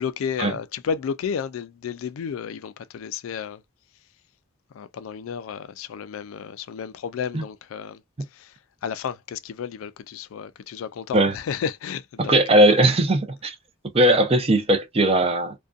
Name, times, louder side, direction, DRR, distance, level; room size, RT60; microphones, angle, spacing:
voice 1, 0.0-3.6 4.7-8.0 8.3-8.6 8.8-12.7, left 7 dB, 75° left, 0.3 m, -32 dB
voice 2, 12.2-13.5 13.9-15.5, right 1 dB, 30° right, 0.5 m, -18 dB
2.5 x 2.2 x 2.3 m
head